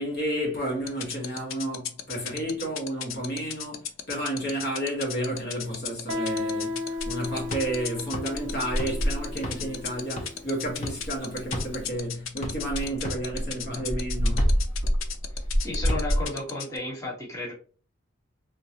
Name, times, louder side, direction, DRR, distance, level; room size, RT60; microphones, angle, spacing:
voice 1, 0.0-14.5, right 1 dB, 50° left, 1.3 m, -31 dB
sound 1, 0.9-16.8, left 9 dB, 80° left, 0.5 m, -34 dB
Guitar, 6.1-11.5, left 3 dB, 60° right, 0.6 m, -35 dB
sound 2, 7.0-12.0 12.4-16.3, equal, 35° left, 0.6 m, -28 dB
voice 2, 15.6-17.5, left 2 dB, 15° left, 1.2 m, -33 dB
3.7 x 2.3 x 2.8 m
head